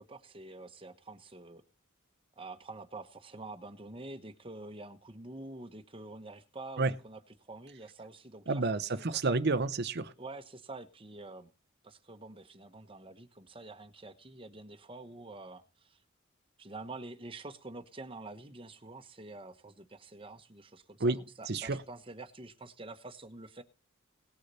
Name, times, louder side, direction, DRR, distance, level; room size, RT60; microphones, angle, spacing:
voice 1, 0.0-1.6 2.4-8.6 8.9-9.0 10.2-11.5 11.8-16.0 16.6-23.6, right 2 dB, 25° right, 1.1 m, -47 dB
voice 2, 8.5-10.1 21.0-21.2 21.5-21.8, right 3 dB, 55° right, 0.7 m, -30 dB
18.5 x 6.5 x 4.2 m
head